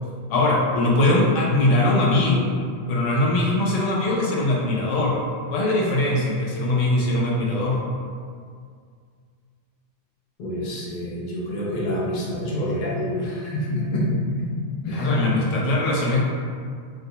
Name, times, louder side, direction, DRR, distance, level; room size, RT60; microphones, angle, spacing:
voice 1, 0.3-2.5 2.9-5.2 5.5-7.8 14.9-16.2, left 2 dB, 80° left, -3 dB, 0.9 m, -21 dB
voice 2, 10.4-14.1 14.4-14.5 14.8-15.2, equal, 55° left, -5 dB, 0.5 m, -27 dB
2.3 x 2.2 x 2.7 m, 2.1 s
omnidirectional pair, 1.3 m